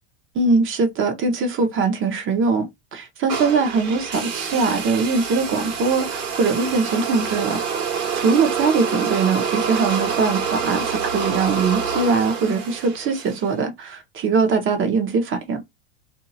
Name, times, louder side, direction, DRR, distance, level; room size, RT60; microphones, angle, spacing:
voice 1, 0.3-7.6 8.1-15.6, right 4 dB, 30° right, 0.9 m, -21 dB
sound 1, 3.3-13.5, right 6 dB, 85° right, 1.4 m, -27 dB
2.7 x 2.3 x 2.7 m
supercardioid pair, 125°, 41 cm